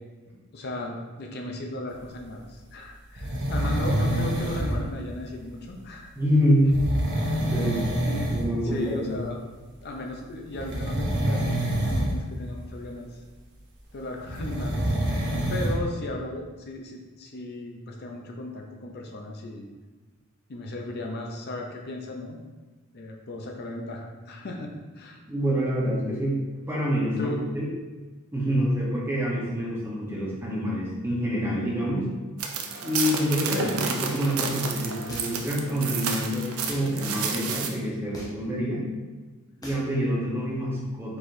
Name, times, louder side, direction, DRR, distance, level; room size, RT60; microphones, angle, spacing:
voice 1, 0.5-6.1 7.2-7.7 8.1-8.3 8.6-9.4 9.8-13.2 13.9-19.7 20.5-22.4 22.9-25.2 27.2-27.4 33.5-33.7, left 2 dB, 50° left, 2 dB, 0.5 m, -36 dB
sound 1, 3.2-4.8 6.7-8.5 8.8-9.1 10.5-12.2 14.3-15.7, right 1 dB, 55° right, 0.9 m, -26 dB
voice 2, 6.1-6.7 7.3-7.8 8.3-9.1 25.3-26.4 26.7-27.7 28.3-32.1 32.8-38.9 39.6-41.2, equal, 10° right, -5 dB, 0.9 m, -26 dB
sound 2, 32.4-37.7, right 5 dB, 75° right, 0.5 m, -31 dB
sound 3, 35.1-35.5 36.6-36.9 38.1-38.5 39.6-39.9, left 1 dB, 20° left, 0.9 m, -41 dB
4.7 x 4.1 x 2.6 m, 1.3 s
head